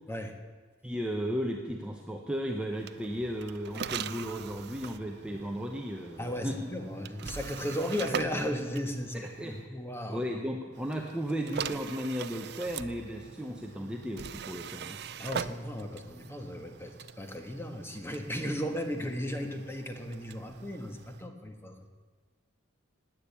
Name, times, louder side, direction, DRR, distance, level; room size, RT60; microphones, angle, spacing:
voice 1, 0.1-0.4 6.2-10.2 15.2-21.9, equal, 10° left, 5 dB, 1.3 m, -35 dB
voice 2, 0.8-6.7 7.2-7.3 9.1-9.7 10.1-15.0, equal, 5° right, 1 dB, 0.9 m, -35 dB
sound 1, 2.7-9.7 10.7-21.3, right 7 dB, 50° right, 0.5 m, -42 dB
18.5 x 9.1 x 8.5 m, 1.5 s
head